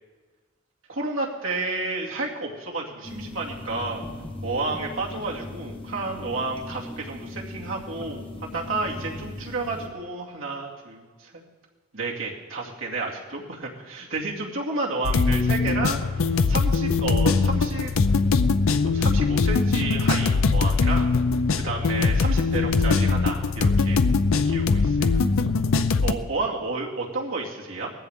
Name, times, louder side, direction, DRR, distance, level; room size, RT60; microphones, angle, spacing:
voice 1, 0.9-4.0 4.4-11.4 11.9-17.9 18.8-21.1 21.5-24.0 24.4-25.2 26.0-27.9, right 3 dB, 75° right, -2 dB, 2.4 m, -31 dB
sound 1, 3.0-9.9, left 2 dB, 25° left, 1.4 m, -38 dB
sound 2, 15.0-26.1, left 4 dB, 85° left, 0.6 m, -21 dB
19.5 x 14.5 x 3.6 m, 1.4 s
head